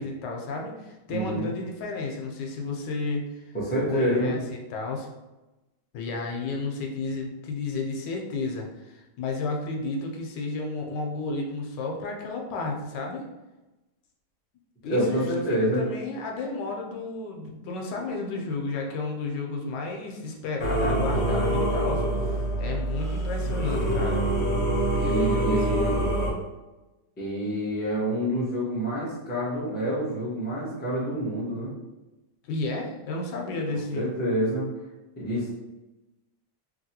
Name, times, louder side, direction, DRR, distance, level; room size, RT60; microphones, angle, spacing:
voice 1, 0.0-3.4 3.9-5.1 5.9-13.3 14.8-15.3 15.6-22.0 22.6-24.3 25.0-25.9 32.4-34.1, left 3 dB, 80° left, 1 dB, 1.2 m, -32 dB
voice 2, 1.1-1.5 3.5-4.3 14.8-15.8 25.0-26.0 27.2-31.7 33.9-34.7 35.2-35.5, right 1 dB, 10° left, -6 dB, 0.4 m, -27 dB
Singing / Musical instrument, 20.6-26.3, right 1 dB, 55° left, 0.8 m, -25 dB
2.8 x 2.8 x 2.7 m, 1.0 s
omnidirectional pair, 1.9 m